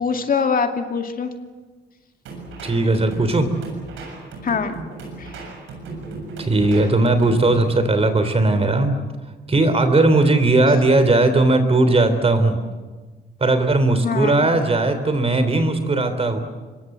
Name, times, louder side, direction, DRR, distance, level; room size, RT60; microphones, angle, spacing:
voice 1, 0.0-1.3 4.4-4.8 5.2-5.3 14.0-14.5, left 5 dB, 45° left, 5 dB, 2.3 m, -23 dB
sound 1, 2.3-7.7, right 3 dB, 90° right, 7.1 m, -35 dB
voice 2, 2.6-3.5 6.4-8.9 9.5-12.6 13.4-16.4, right 2 dB, 30° right, 9 dB, 3.3 m, -18 dB
25.5 x 22.0 x 7.9 m, 1.3 s
cardioid pair, 90°, 20 cm